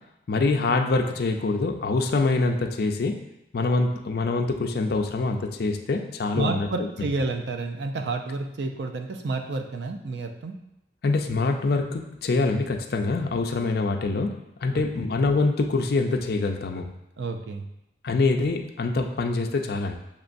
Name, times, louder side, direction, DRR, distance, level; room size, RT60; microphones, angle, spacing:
voice 1, 0.3-3.2 3.5-7.1 11.0-14.3 14.6-16.9 18.0-19.9, left 3 dB, 55° left, 3 dB, 0.4 m, -25 dB
voice 2, 6.3-10.6 14.7-15.1 17.2-17.7, right 3 dB, 65° right, 5 dB, 0.5 m, -30 dB
6.7 x 3.0 x 2.6 m, 0.85 s
head